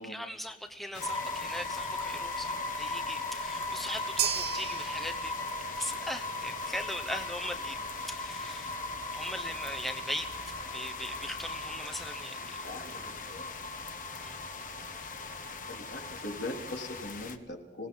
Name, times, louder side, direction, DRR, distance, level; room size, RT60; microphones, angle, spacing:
voice 1, 0.0-5.3 5.8-8.8 9.1-12.6 14.2-14.3, equal, ahead, 0.8 m, -40 dB
sound 1, 0.9-17.4, left 5 dB, 45° left, 1.4 m, -43 dB
sound 2, 1.0-17.1, left 2 dB, 25° left, 2.2 m, -39 dB
sound 3, 4.2-12.6, right 9 dB, 75° right, 1.5 m, -40 dB
voice 2, 12.6-13.5 15.7-17.9, left 2 dB, 75° left, 4.0 m, -41 dB
26.0 x 18.0 x 5.7 m
head